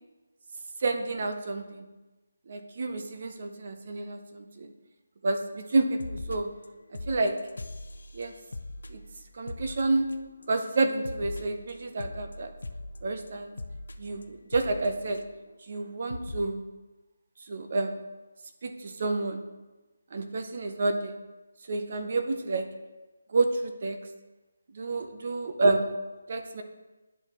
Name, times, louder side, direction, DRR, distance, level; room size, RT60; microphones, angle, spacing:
voice 1, 0.8-1.8 2.5-4.7 5.2-6.5 7.1-7.3 8.1-8.3 8.9-9.0 9.4-10.0 10.5-12.5 13.0-13.6 14.0-15.2 15.7-16.6 17.5-17.9 18.6-19.4 20.1-21.1 21.7-22.7 23.3-24.0 24.7-25.9 26.3-26.6, right 3 dB, 40° right, 6 dB, 0.6 m, -29 dB
sound 1, 5.7-5.8 6.0-6.7 6.9-10.5 10.7-15.5 15.8-15.9 16.1-16.4, left 2 dB, 80° left, 0.5 m, -41 dB
10.0 x 4.1 x 3.0 m, 1.2 s
hypercardioid pair, 170°, 0 cm